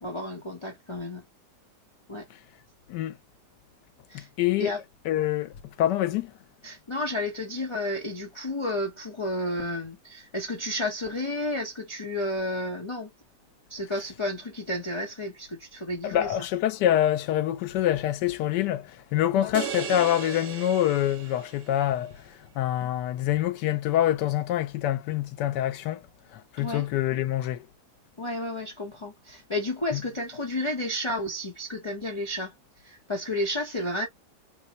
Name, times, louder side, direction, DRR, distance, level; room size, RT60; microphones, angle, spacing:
voice 1, 0.0-1.2 2.1-2.2 4.1-4.3 4.6-4.8 6.6-13.1 13.7-16.4 19.3-19.5 26.6-26.9 28.2-34.1, left 1 dB, 25° left, 0.8 m, -32 dB
voice 2, 4.1-4.7 5.0-6.3 16.0-26.0 26.3-27.7 29.9-30.0, left 12 dB, 85° left, 1.3 m, -26 dB
sound 1, 19.5-21.9, right 8 dB, 70° right, 0.6 m, -36 dB
4.0 x 2.2 x 2.8 m
omnidirectional pair, 1.8 m